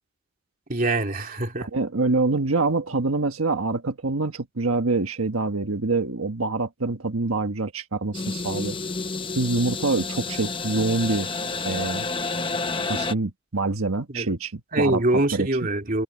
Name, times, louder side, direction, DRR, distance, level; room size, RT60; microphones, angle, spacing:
voice 1, 0.7-1.7 14.1-14.3 14.7-16.0, right 2 dB, 40° right, 2.5 m, -24 dB
voice 2, 1.6-8.8 9.3-11.3 11.6-12.1 12.9-15.5, right 3 dB, 90° right, 1.5 m, -25 dB
sound 1, 8.1-13.1, left 3 dB, 25° left, 0.9 m, -30 dB
head